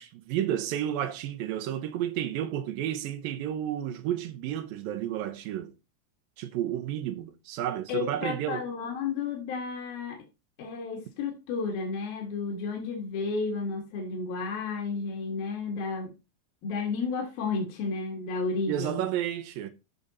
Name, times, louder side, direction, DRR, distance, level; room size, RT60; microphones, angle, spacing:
voice 1, 0.0-5.7 6.4-8.7 18.7-19.7, right 11 dB, 75° right, 2.3 m, -31 dB
voice 2, 7.9-10.2 10.6-16.1 16.6-19.0, left 4 dB, 60° left, 3.4 m, -32 dB
13.5 x 5.2 x 4.2 m
omnidirectional pair, 5.0 m